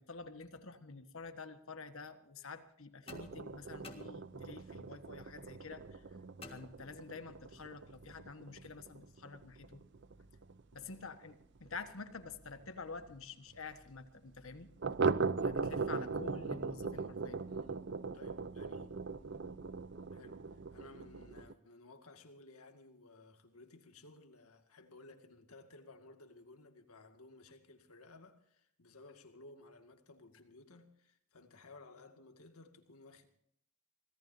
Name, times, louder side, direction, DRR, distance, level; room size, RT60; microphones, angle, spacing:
voice 1, 0.0-6.2 6.4-9.8 10.7-14.7 15.4-17.4, left 4 dB, 70° left, 1.5 m, -49 dB
sound 1, 3.1-4.7 6.4-7.4, left 3 dB, 25° left, 1.8 m, -54 dB
sound 2, 3.1-12.3 12.6-12.7 13.0-13.1 13.5-13.6 14.8-21.5, right 4 dB, 50° right, 0.6 m, -39 dB
voice 2, 17.5-18.9 20.1-33.3, left 2 dB, 90° left, 2.1 m, -57 dB
25.5 x 18.0 x 2.8 m
head